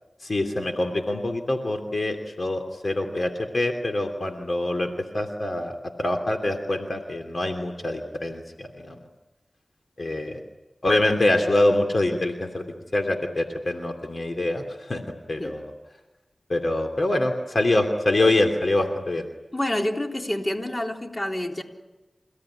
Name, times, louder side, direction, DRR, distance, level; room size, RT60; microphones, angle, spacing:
voice 1, 0.2-9.0 10.0-10.4 10.8-12.6 12.9-15.0 15.3-15.6 16.5-19.3, left 1 dB, 60° left, 3.0 m, -25 dB
voice 2, 19.5-21.6, left 1 dB, 30° left, 3.8 m, -28 dB
29.0 x 17.5 x 10.0 m
cardioid pair, 45°, 0 cm